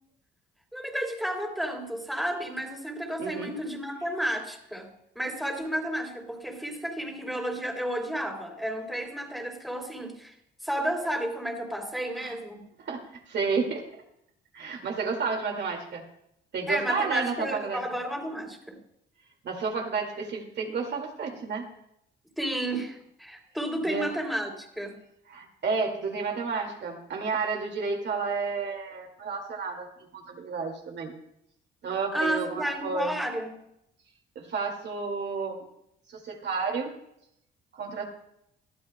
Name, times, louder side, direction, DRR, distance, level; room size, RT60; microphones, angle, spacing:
voice 1, 0.7-4.9 5.1-10.3 10.6-12.6 16.7-18.8 22.4-24.9 32.1-33.6, right 1 dB, ahead, 1 dB, 3.1 m, -32 dB
voice 2, 3.2-3.5 12.2-12.3 12.8-14.0 14.5-16.0 16.5-17.8 19.4-21.7 23.8-24.1 25.3-31.1 31.8-33.2 34.4-35.6 36.1-36.9 37.7-38.1, right 4 dB, 60° right, 1 dB, 2.1 m, -31 dB
20.5 x 13.0 x 2.2 m, 0.78 s
cardioid pair, 90°, 20 cm